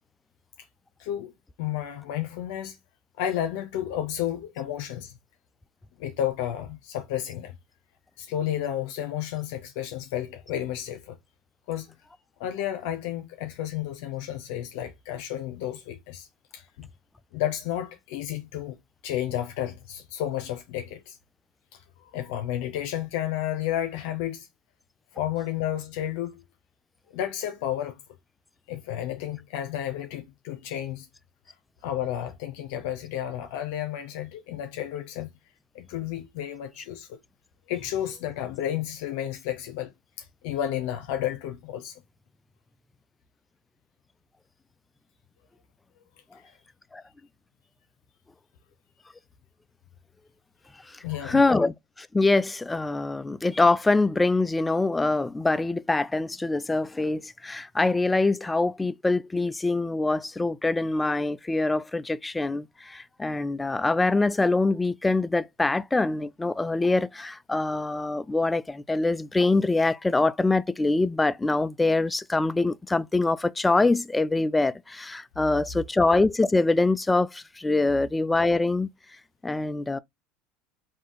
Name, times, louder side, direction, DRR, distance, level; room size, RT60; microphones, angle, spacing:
voice 1, 1.0-1.3 1.6-2.8 3.2-5.1 6.0-7.5 8.2-11.2 11.7-11.9 12.4-16.3 16.5-16.9 17.3-18.8 19.0-21.2 21.7-24.5 25.1-26.4 27.1-28.0 28.7-31.1 31.8-35.4 35.7-37.2 37.7-39.9 40.2-42.0 46.3-46.6 51.0-51.4, left 11 dB, 70° left, 0.7 m, -32 dB
voice 2, 50.9-78.9 79.4-80.0, left 3 dB, 15° left, 0.3 m, -24 dB
3.6 x 2.7 x 3.9 m
hypercardioid pair, 90°, 0 cm